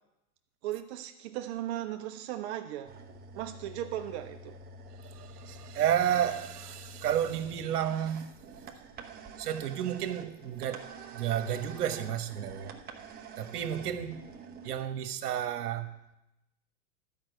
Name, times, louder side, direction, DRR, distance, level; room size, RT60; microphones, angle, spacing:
voice 1, 0.6-2.9 3.4-4.5, right 12 dB, 45° right, 0.8 m, -37 dB
sound 1, 2.8-14.8, right 3 dB, 20° right, 1.0 m, -48 dB
voice 2, 5.0-8.3 9.4-12.7 13.4-14.2 14.6-15.9, right 10 dB, 75° right, 1.3 m, -31 dB
12.0 x 5.5 x 8.0 m
hypercardioid pair, 130°, 46 cm